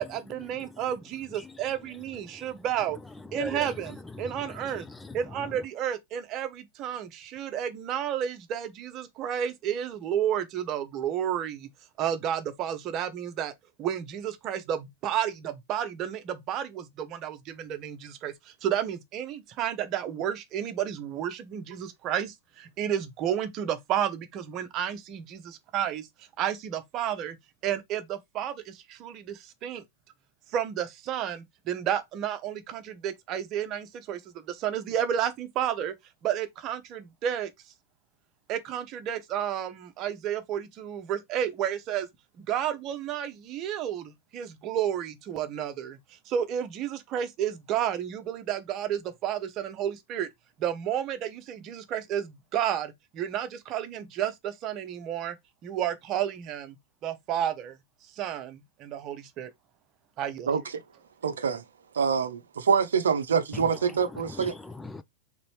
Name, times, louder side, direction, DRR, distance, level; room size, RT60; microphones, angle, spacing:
voice 1, 0.0-3.0 3.3-4.9 5.1-11.7 12.0-13.5 13.8-26.1 26.4-27.4 27.6-29.8 30.5-35.9 36.2-37.5 38.5-42.1 42.4-46.0 46.3-50.3 50.6-55.3 55.6-56.8 57.0-57.8 58.1-59.5 60.2-60.5, right 10 dB, 35° right, 0.8 m, -31 dB
voice 2, 3.3-3.7 4.8-5.2 63.5-63.7 64.1-65.0, left 2 dB, 10° left, 0.3 m, -38 dB
voice 3, 61.2-61.6 62.0-64.5, right 6 dB, 65° right, 0.6 m, -25 dB
4.0 x 3.4 x 3.1 m
figure-of-eight pair, 90°, 0 cm